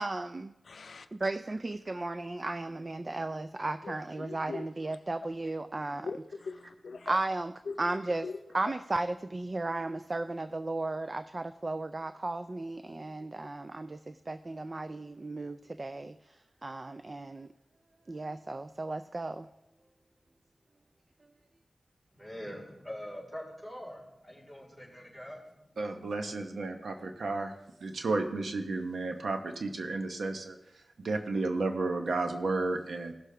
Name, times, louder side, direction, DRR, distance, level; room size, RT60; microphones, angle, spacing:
voice 1, 0.0-0.5 1.1-6.1 7.1-8.3 8.5-17.5 18.1-19.5, right 2 dB, 35° right, 11 dB, 0.3 m, -35 dB
voice 2, 0.7-1.1 3.8-4.7 6.0-7.2 7.7-7.8 8.2-8.4, left 4 dB, 75° left, 10 dB, 0.5 m, -41 dB
voice 3, 22.1-25.8, equal, 15° right, -4 dB, 4.0 m, -44 dB
voice 4, 25.8-27.5 27.8-33.1, right 3 dB, 85° right, 5 dB, 0.9 m, -33 dB
17.0 x 6.6 x 3.4 m, 0.89 s
wide cardioid pair, 100°, 0 cm